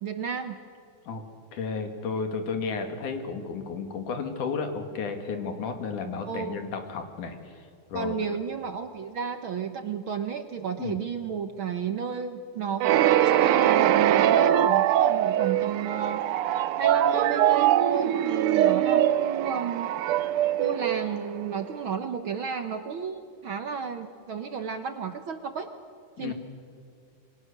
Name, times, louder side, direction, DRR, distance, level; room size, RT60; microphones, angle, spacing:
voice 1, 0.0-0.6 6.2-6.7 7.9-16.3 16.8-19.9 20.6-25.7 26.2-26.3, right 7 dB, 60° right, 8 dB, 1.4 m, -32 dB
voice 2, 1.5-7.6 7.9-8.3 10.8-11.0 26.2-26.3, left 5 dB, 85° left, 6 dB, 3.8 m, -33 dB
sound 1, 12.8-21.6, right 11 dB, 85° right, 1.2 m, -22 dB
28.5 x 24.0 x 6.8 m, 2.4 s
omnidirectional pair, 3.4 m